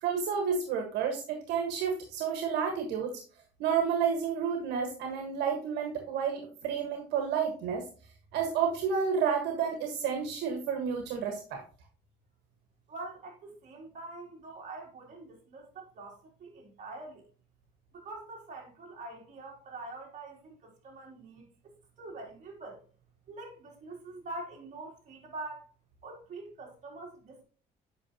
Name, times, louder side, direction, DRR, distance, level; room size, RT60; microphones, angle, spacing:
voice 1, 0.0-3.2 3.6-7.8 8.3-11.6, right 7 dB, 85° right, 1.5 m, -30 dB
voice 2, 12.9-17.3 17.9-21.4 22.0-22.8 23.3-25.6 26.0-27.4, right 2 dB, 45° right, 3.3 m, -44 dB
8.5 x 5.7 x 2.9 m
cardioid pair, 110°, 17 cm